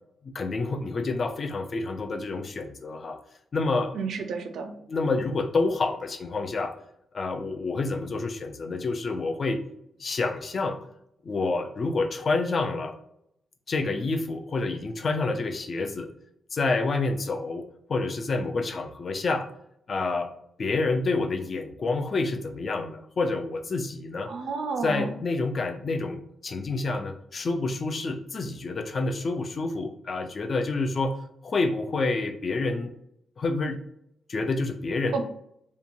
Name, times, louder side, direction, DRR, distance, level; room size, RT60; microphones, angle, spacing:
voice 1, 0.2-3.2 3.5-3.9 4.9-6.7 7.1-9.6 10.0-10.8 11.2-12.9 13.7-16.1 16.5-17.6 17.9-19.5 19.9-20.3 20.6-24.3 24.8-31.2 31.4-32.9 33.4-33.8 34.3-35.2, left 3 dB, 35° left, 6 dB, 0.3 m, -28 dB
voice 2, 3.9-4.8 24.3-25.1 35.1-35.2, right 4 dB, 65° right, 6 dB, 0.4 m, -31 dB
2.8 x 2.2 x 2.5 m, 0.74 s
cardioid pair, 140°, 0 cm